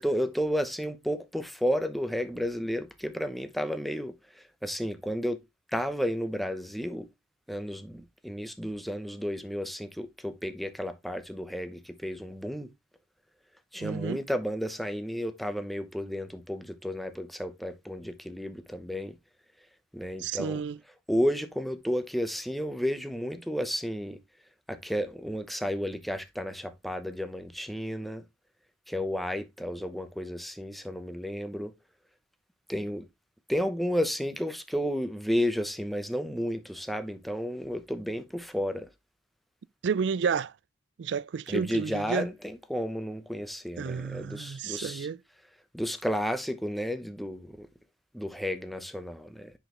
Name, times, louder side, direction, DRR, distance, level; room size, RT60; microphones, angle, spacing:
voice 1, 0.0-4.1 4.6-5.4 5.7-7.1 7.5-12.7 13.7-19.1 19.9-20.6 21.1-24.2 24.7-28.2 28.9-31.7 32.7-33.1 33.5-38.9 41.5-45.1 45.7-47.7 48.1-49.5, equal, ahead, 0.8 m, -32 dB
voice 2, 13.8-14.2 20.2-20.8 39.8-40.5 41.0-42.3 43.8-45.2, right 6 dB, 75° right, 0.4 m, -31 dB
9.8 x 5.1 x 3.0 m
head